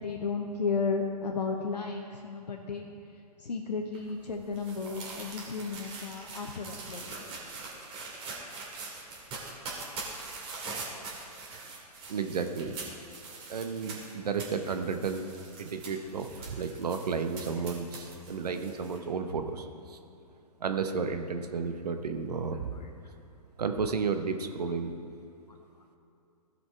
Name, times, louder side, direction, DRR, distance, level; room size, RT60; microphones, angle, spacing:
voice 1, 0.0-2.8 3.4-7.2 17.6-17.7 22.7-22.9, left 4 dB, 85° left, 2 dB, 0.9 m, -33 dB
sound 1, 3.9-19.0, right 3 dB, 25° right, 2.1 m, -43 dB
voice 2, 12.1-12.7 13.5-15.3 15.6-20.0 20.6-22.7 23.6-24.9, right 5 dB, 70° right, 7 dB, 0.9 m, -32 dB
15.5 x 5.4 x 4.5 m, 2.6 s
hypercardioid pair, 130°, 21 cm